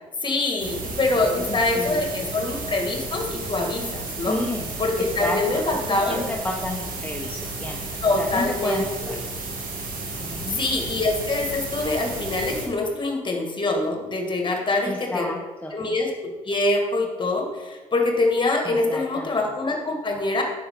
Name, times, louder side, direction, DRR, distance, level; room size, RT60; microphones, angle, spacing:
voice 1, 0.2-4.4 4.8-6.2 8.0-9.2 10.4-15.3 15.7-20.4, left 2 dB, 25° left, 2 dB, 2.0 m, -24 dB
sound 1, 0.6-12.7, right 3 dB, 55° right, 2.2 m, -33 dB
voice 2, 1.2-2.3 4.3-7.8 8.2-9.2 10.2-10.6 14.9-15.7 18.6-19.3, left 1 dB, 10° left, -1 dB, 1.2 m, -31 dB
9.2 x 7.1 x 3.8 m, 1.3 s
hypercardioid pair, 55°, 17 cm